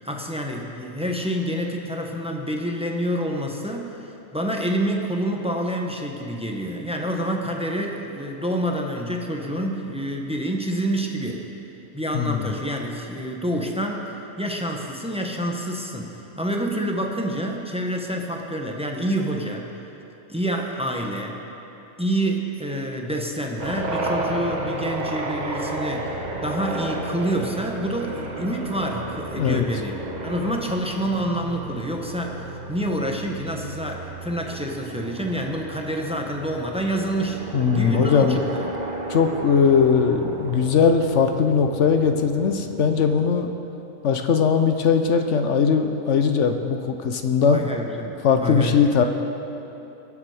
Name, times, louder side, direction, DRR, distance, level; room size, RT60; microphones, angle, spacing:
voice 1, 0.0-11.5 11.9-19.7 20.3-21.4 22.0-37.4 37.7-38.7 47.5-48.9, right 1 dB, 5° right, 1 dB, 0.8 m, -28 dB
voice 2, 12.1-12.5 29.4-29.6 37.5-38.4 39.1-43.5 44.0-47.7 48.2-49.0, left 6 dB, 60° left, 6 dB, 1.0 m, -20 dB
sound 1, 23.6-43.3, right 2 dB, 35° right, 1.1 m, -33 dB
21.5 x 7.1 x 4.9 m, 3.0 s
omnidirectional pair, 1.5 m